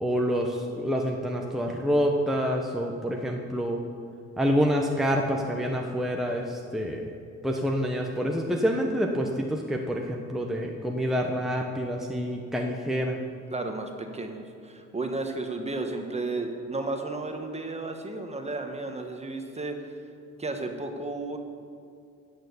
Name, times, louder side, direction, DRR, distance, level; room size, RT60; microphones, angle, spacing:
voice 1, 0.0-3.8 4.4-7.1 7.4-13.2, equal, ahead, 0 dB, 1.0 m, -27 dB
voice 2, 13.5-19.9 20.4-21.4, right 2 dB, 20° right, 4 dB, 1.3 m, -33 dB
11.0 x 6.7 x 8.4 m, 2.4 s
cardioid pair, 90°, 30 cm